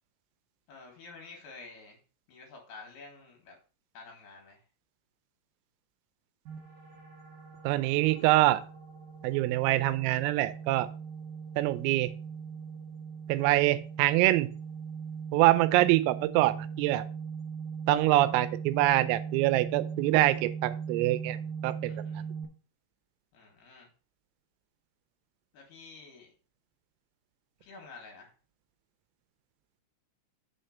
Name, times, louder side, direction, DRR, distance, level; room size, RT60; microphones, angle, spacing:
voice 1, 0.7-2.0 2.3-3.6 3.9-4.6 21.9-22.2 23.3-23.9 25.5-26.3 27.6-28.3, left 4 dB, 60° left, 1 dB, 3.5 m, -50 dB
sound 1, 6.5-22.5, right 6 dB, 70° right, 2.4 m, -40 dB
voice 2, 7.6-8.6 9.2-10.9 11.6-12.1 13.3-14.5 15.3-17.1 17.9-21.4 21.6-21.9, right 17 dB, 85° right, 12 dB, 3.3 m, -25 dB
7.1 x 4.4 x 6.5 m, 0.36 s
omnidirectional pair, 6.0 m